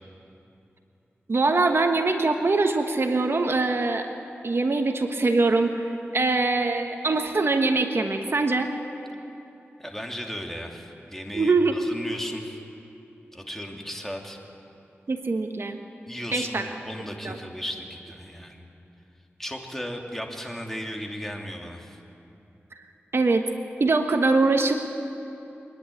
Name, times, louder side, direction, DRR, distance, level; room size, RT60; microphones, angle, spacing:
voice 1, 1.3-4.1 4.4-8.7 11.3-11.8 15.1-15.8 16.3-16.7 17.2-17.4 23.1-23.5 23.8-24.7, right 3 dB, 60° right, 5 dB, 1.2 m, -23 dB
voice 2, 9.8-12.6 13.3-14.4 16.1-18.6 19.4-22.0, equal, 5° left, 1 dB, 2.9 m, -36 dB
24.5 x 10.5 x 9.9 m, 2.8 s
cardioid pair, 40°, 5 cm